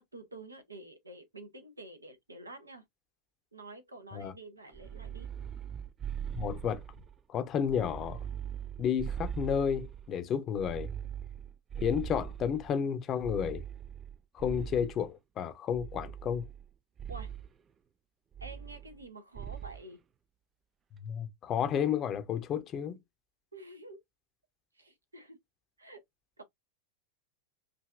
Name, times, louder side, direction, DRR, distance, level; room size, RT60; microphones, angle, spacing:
voice 1, 0.0-2.8 3.5-5.3 17.1-17.3 18.4-20.0 23.5-24.0 24.7-25.4 25.8-26.0 26.4-26.5, right 2 dB, 80° right, 1.0 m, -48 dB
sound 1, 4.7-7.2 7.6-10.1 10.6-12.7 13.2-15.1 15.7-16.7 17.0-17.5 18.3-19.1 19.4-19.8, right 9 dB, 25° right, 0.3 m, -41 dB
voice 2, 6.3-6.8 7.3-8.2 8.8-10.9 11.8-13.6 14.3-16.5 21.0-23.0, left 8 dB, 30° left, 0.7 m, -31 dB
5.1 x 2.7 x 2.4 m
figure-of-eight pair, 90°, 0 cm